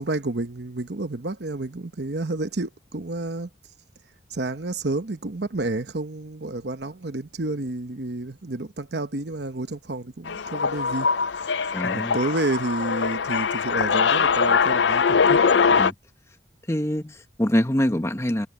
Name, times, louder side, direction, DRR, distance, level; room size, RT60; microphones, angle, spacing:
voice 1, 0.0-3.5 4.3-11.1 11.8-15.4, right 2 dB, 65° right, 1.1 m, -30 dB
sound 1, 10.3-15.9, left 5 dB, 80° left, 0.5 m, -22 dB
voice 2, 11.7-12.2 15.8-15.9 16.7-18.5, equal, 15° left, 1.0 m, -24 dB
head